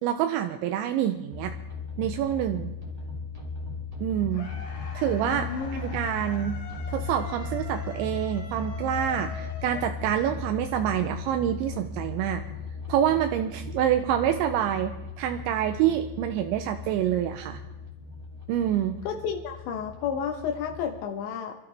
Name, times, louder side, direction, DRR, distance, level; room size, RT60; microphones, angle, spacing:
voice 1, 0.0-1.6 2.0-2.7 4.0-4.5 4.9-6.6 6.9-12.4 12.9-17.6 18.5-19.0, right 10 dB, 85° right, 6 dB, 3.0 m, -27 dB
sound 1, 1.3-21.0, left 4 dB, 15° right, 1.3 m, -37 dB
sound 2, 4.3-10.4, left 4 dB, 50° left, 3.9 m, -44 dB
voice 2, 5.2-5.8 19.0-21.6, left 7 dB, 80° left, 4 dB, 3.2 m, -31 dB
26.5 x 13.0 x 3.4 m, 0.99 s
omnidirectional pair, 5.3 m